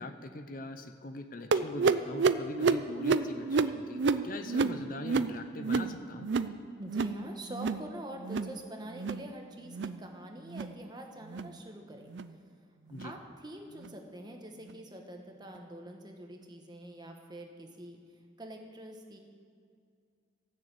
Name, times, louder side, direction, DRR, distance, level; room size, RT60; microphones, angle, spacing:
voice 1, 0.0-6.3 12.9-13.1, left 2 dB, 45° left, 8 dB, 0.6 m, -42 dB
sound 1, 1.5-6.6 6.8-7.2 7.5-7.9 8.2-8.6 8.9-9.3 9.7-10.0 10.5-10.7 11.3-11.5 12.1-12.3 12.9-13.1 13.8-13.9 14.7-14.8, right 4 dB, 65° right, 0.4 m, -30 dB
voice 2, 6.8-12.1 13.0-18.0 18.4-19.2, right 1 dB, 20° right, 2 dB, 1.2 m, -45 dB
15.0 x 6.7 x 8.3 m, 2.3 s
head